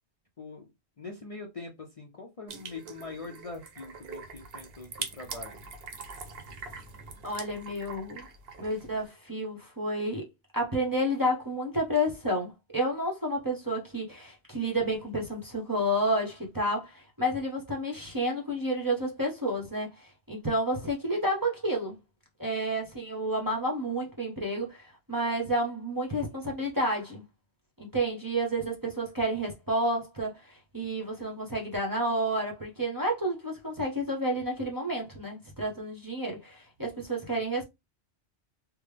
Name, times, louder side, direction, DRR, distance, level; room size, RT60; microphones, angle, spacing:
voice 1, 0.4-0.7 1.0-5.6, left 3 dB, 40° left, 0.5 m, -43 dB
sound 1, 2.5-9.1, right 5 dB, 65° right, 0.9 m, -43 dB
voice 2, 7.2-8.3 8.6-10.3 10.5-22.0 22.4-27.2 27.8-37.6, right 1 dB, 20° right, 0.7 m, -30 dB
3.4 x 2.1 x 3.2 m
omnidirectional pair, 1.1 m